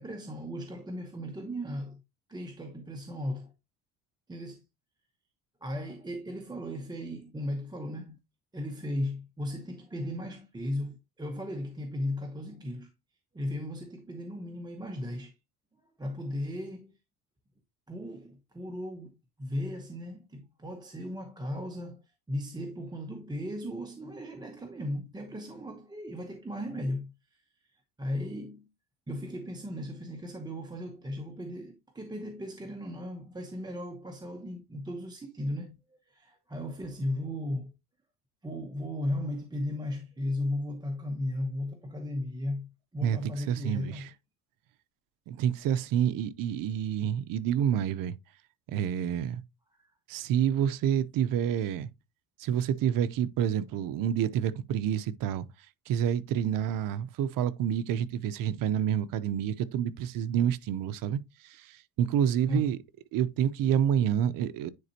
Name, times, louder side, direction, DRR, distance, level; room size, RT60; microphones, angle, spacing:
voice 1, 0.0-2.0 2.3-3.5 4.3-4.6 5.6-8.2 8.5-12.9 13.3-15.3 16.0-16.9 17.9-27.4 27.7-28.7 29.1-35.8 36.1-37.7 38.4-44.1 49.8-49.9 62.5-62.7, left 1 dB, 10° right, 0.9 m, -36 dB
voice 2, 43.0-44.1 45.3-48.2 48.7-49.4 50.1-51.9 52.4-55.5 55.9-62.8 63.1-64.7, right 9 dB, 60° right, 0.6 m, -28 dB
9.7 x 4.2 x 2.8 m
cardioid pair, 135°, 38 cm